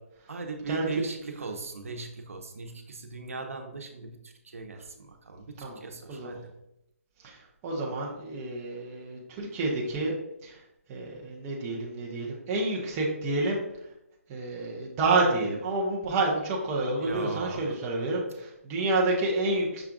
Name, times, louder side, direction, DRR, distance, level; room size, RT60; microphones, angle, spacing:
voice 1, 0.3-6.5 17.0-17.6, right 4 dB, 70° right, 5 dB, 0.8 m, -38 dB
voice 2, 7.2-10.1 10.4-10.6 10.9-13.6 14.3-19.8, right 2 dB, 10° right, -3 dB, 0.4 m, -29 dB
5.7 x 2.4 x 3.5 m, 0.85 s
hypercardioid pair, 170°, 8 cm